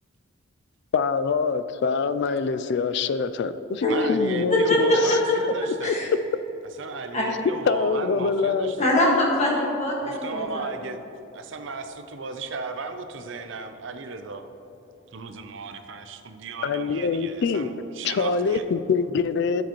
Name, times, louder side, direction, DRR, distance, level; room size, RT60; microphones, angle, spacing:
voice 1, 0.9-5.2 5.9-6.0 7.7-8.9 16.6-17.7 18.0-19.6, left 5 dB, 55° left, 13 dB, 0.3 m, -25 dB
voice 2, 3.9-6.0 6.8-8.9 10.0-11.0 11.3-14.5 15.1-18.6, right 3 dB, 65° right, 7 dB, 0.6 m, -35 dB
voice 3, 4.5-5.2 5.8-6.1 7.1-7.2 8.8-10.4, left 1 dB, 35° left, -3 dB, 1.7 m, -22 dB
11.5 x 7.1 x 3.0 m, 3.0 s
head